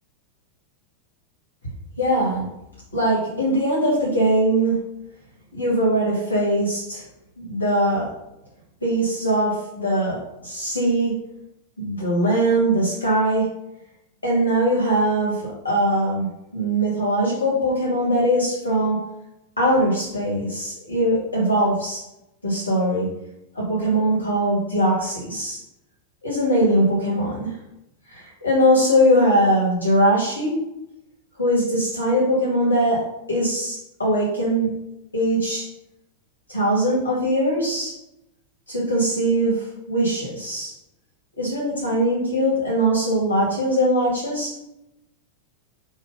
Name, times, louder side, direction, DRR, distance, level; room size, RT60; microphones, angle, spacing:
voice 1, 2.0-2.5 2.9-4.8 5.5-7.0 7.4-8.1 8.8-11.2 11.8-13.5 14.2-16.3 16.5-19.0 19.6-22.0 22.4-23.1 23.5-25.6 26.2-27.5 28.1-30.5 31.4-34.8 35.1-35.7 36.5-37.9 38.7-40.7 41.4-44.5, right 1 dB, 80° left, -5 dB, 2.2 m, -21 dB
6.3 x 3.0 x 5.6 m, 0.88 s
figure-of-eight pair, 90°, 0 cm